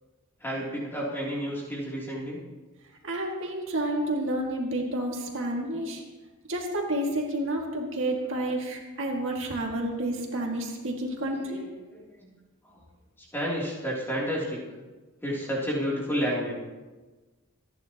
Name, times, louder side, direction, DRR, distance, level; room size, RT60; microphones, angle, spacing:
voice 1, 0.4-2.4 8.3-8.4 11.2-12.3 12.6-12.8 13.3-14.6 15.2-16.5, equal, 10° left, -5 dB, 3.1 m, -31 dB
voice 2, 3.0-6.0 6.5-11.6, right 1 dB, 60° right, 0 dB, 2.2 m, -30 dB
26.5 x 11.0 x 3.0 m, 1.3 s
head